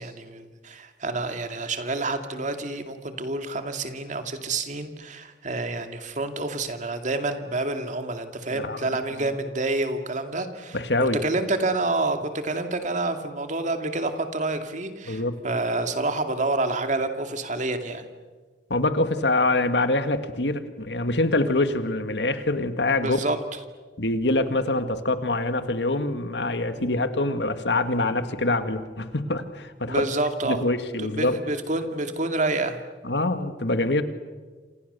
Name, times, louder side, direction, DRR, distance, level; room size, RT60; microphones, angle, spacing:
voice 1, 0.0-18.1 23.0-23.4 26.7-26.9 29.9-30.6 31.0-32.8, right 2 dB, 45° right, 7 dB, 2.4 m, -28 dB
voice 2, 10.7-11.2 15.1-15.4 18.7-23.3 24.0-30.0 30.4-31.4 33.0-34.0, left 2 dB, 80° left, 9 dB, 2.0 m, -25 dB
28.0 x 27.5 x 6.9 m, 1.4 s
head